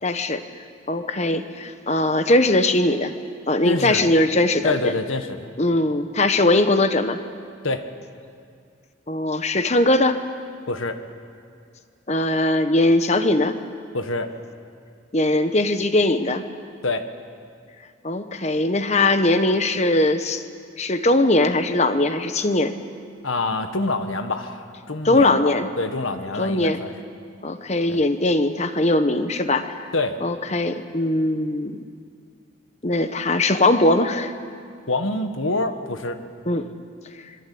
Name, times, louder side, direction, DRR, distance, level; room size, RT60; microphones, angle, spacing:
voice 1, 0.0-0.4 0.9-3.1 3.5-4.9 5.6-7.2 9.1-10.2 12.1-13.6 15.1-16.4 18.0-20.4 20.8-22.7 25.0-25.7 26.4-26.8 27.4-29.9 30.2-31.8 32.8-34.3 36.5-36.7, left 2 dB, 35° left, 9 dB, 1.2 m, -20 dB
voice 2, 3.6-4.1 4.6-5.4 7.6-7.8 10.7-11.0 13.9-14.3 16.8-17.1 23.2-26.9 27.9-28.0 29.9-30.2 34.9-36.2, left 2 dB, 80° left, 8 dB, 1.7 m, -26 dB
25.5 x 23.0 x 8.6 m, 2.2 s
head